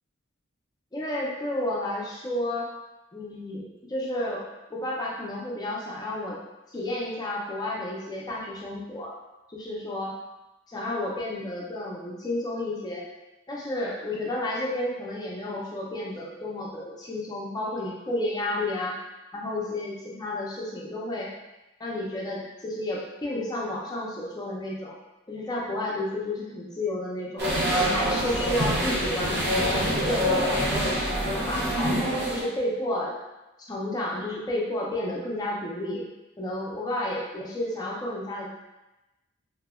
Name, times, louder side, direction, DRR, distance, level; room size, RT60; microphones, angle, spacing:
voice 1, 0.9-2.7 3.1-6.4 6.7-9.1 9.5-10.1 10.7-13.1 13.5-19.0 19.3-21.3 21.8-24.9 25.3-27.5 27.8-31.9 32.3-33.2 33.6-36.1 36.4-38.5, left 1 dB, 20° left, -4 dB, 0.4 m, -31 dB
sound 1, 27.4-32.4, equal, 55° right, 0.7 m, -25 dB
2.7 x 2.0 x 2.3 m, 1.0 s
head